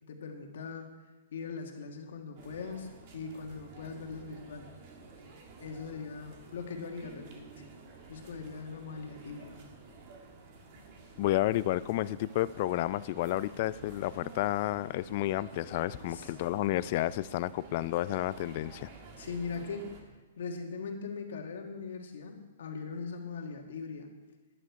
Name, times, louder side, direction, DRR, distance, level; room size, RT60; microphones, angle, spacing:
voice 1, 0.0-0.9 1.3-4.7 5.6-7.5 8.1-9.6 16.1-16.3 19.2-20.1 20.4-24.1, left 5 dB, 70° left, 3 dB, 1.7 m, -40 dB
sound 1, 2.4-20.0, right 3 dB, 45° right, 1.9 m, -51 dB
voice 2, 11.2-18.9, left 15 dB, 50° left, 18 dB, 0.3 m, -31 dB
11.0 x 9.6 x 4.7 m, 1.2 s
hypercardioid pair, 130°, 0 cm